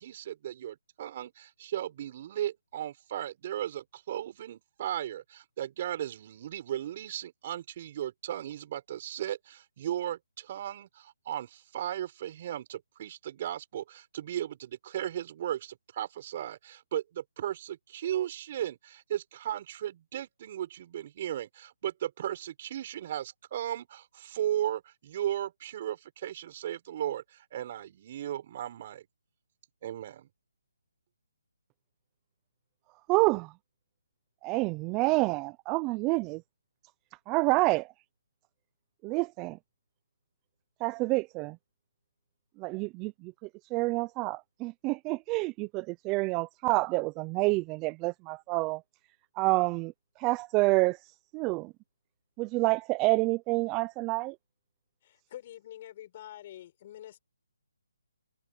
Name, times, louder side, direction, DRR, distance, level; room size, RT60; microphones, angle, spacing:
voice 1, 0.0-29.1 29.8-30.3, right 11 dB, 35° right, 5.8 m, -36 dB
voice 2, 33.1-33.5 34.4-36.4 37.3-37.9 39.0-39.6 40.8-41.6 42.6-43.3 43.7-48.8 49.4-49.9 50.2-51.0 51.3-51.7 52.4-54.3, right 24 dB, 20° right, 0.7 m, -28 dB
voice 3, 55.0-57.2, left 12 dB, 35° left, 6.9 m, -46 dB
hypercardioid pair, 160°, 0 cm